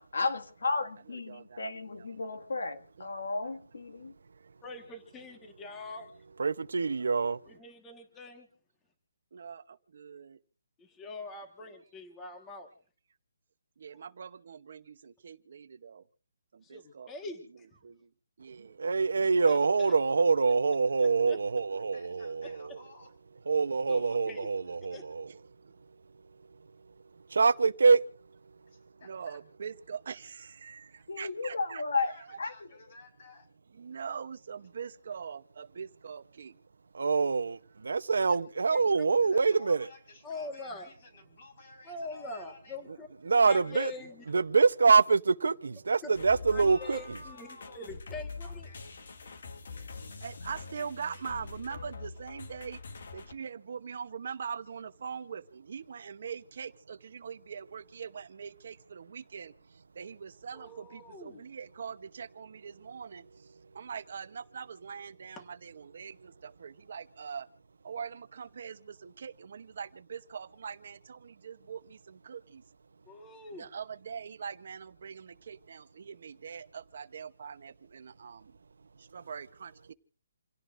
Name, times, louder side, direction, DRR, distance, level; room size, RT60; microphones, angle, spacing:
voice 1, 0.1-4.1 31.1-32.1 32.4-32.5, left 3 dB, 80° left, 1.9 m, -33 dB
voice 2, 1.1-1.8 2.3-2.4 3.0-3.1 9.3-10.4 13.8-16.0 16.5-17.1 17.8-18.1 18.4-18.9 19.1-19.2 25.3-25.4 29.0-32.0 32.3-32.4 33.8-36.5 38.9-39.0 50.2-52.8 53.1-59.5 59.9-63.2 63.7-67.5 67.8-72.6 73.6-78.6 79.0-79.9, right 6 dB, 45° right, 0.8 m, -42 dB
voice 3, 4.6-6.1 7.5-8.5 10.8-12.7 16.6-17.6 19.2-19.9 21.0-21.4 23.9-24.5 24.9-25.0 38.7-38.8 40.2-40.9 41.8-43.1 43.5-44.3 46.0-46.1 46.5-48.7 60.5-61.4 65.3-65.4 73.1-73.7, left 2 dB, 10° left, 1.5 m, -44 dB
voice 4, 6.4-7.4 18.8-22.8 23.5-25.3 27.3-28.0 36.9-39.9 43.3-43.9 44.3-47.2, right 4 dB, 75° right, 0.8 m, -25 dB
voice 5, 21.9-23.1 23.8-24.2 28.7-29.4 31.0-31.1 32.0-33.5 39.2-42.8 43.3-43.9 46.5-48.1 48.4-48.8, left 2 dB, 35° left, 4.9 m, -54 dB
sound 1, 46.1-53.4, left 4 dB, 50° left, 1.5 m, -44 dB
28.0 x 17.5 x 2.6 m
hypercardioid pair, 175°, 0 cm